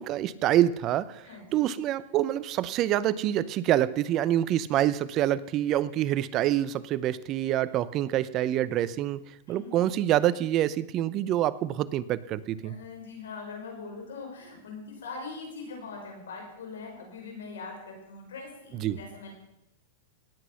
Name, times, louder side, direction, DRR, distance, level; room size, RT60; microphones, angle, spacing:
voice 1, 0.0-1.3 1.5-9.2 9.5-12.8 18.7-19.0, right 12 dB, 40° right, 17 dB, 0.7 m, -26 dB
voice 2, 1.2-1.7 9.5-9.8 12.6-19.3, left 4 dB, 85° left, 1 dB, 5.7 m, -42 dB
18.0 x 8.4 x 5.7 m, 0.84 s
hypercardioid pair, 125°, 0 cm